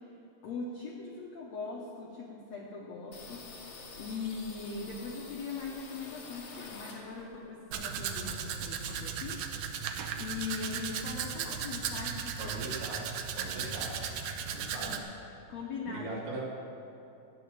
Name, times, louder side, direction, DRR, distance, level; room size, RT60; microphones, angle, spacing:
voice 1, 0.4-3.5 4.0-9.5 10.2-12.6 14.8-14.9 15.5-16.4, left 4 dB, 80° left, -2 dB, 1.5 m, -40 dB
sound 1, 3.1-7.5 7.8-9.2 9.5-9.6 9.8-10.5, left 4 dB, 55° left, 2.5 m, -48 dB
Domestic sounds home sounds, 7.7-15.0, right 7 dB, 90° right, 1.6 m, -36 dB
voice 2, 12.4-13.1 13.4-14.0 14.5-15.0 15.8-16.4, right 3 dB, 75° right, -3 dB, 4.0 m, -40 dB
12.5 x 9.2 x 7.0 m, 3.0 s
omnidirectional pair, 4.4 m